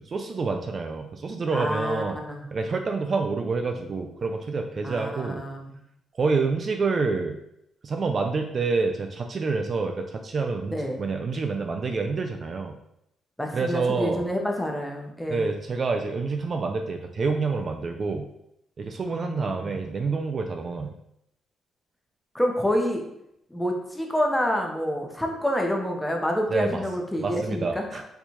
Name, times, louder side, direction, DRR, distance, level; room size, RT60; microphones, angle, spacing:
voice 1, 0.0-2.2 2.5-5.5 6.2-7.4 7.8-12.8 13.5-14.2 15.3-18.3 18.8-21.0 26.5-26.8 27.2-28.0, right 4 dB, 40° right, 4 dB, 0.3 m, -27 dB
voice 2, 1.5-2.4 4.8-5.8 10.7-11.0 13.4-15.5 19.2-19.8 22.3-23.0 23.5-27.9, equal, 5° left, 1 dB, 0.7 m, -28 dB
4.4 x 2.3 x 2.7 m, 0.79 s
cardioid pair, 90°, 0 cm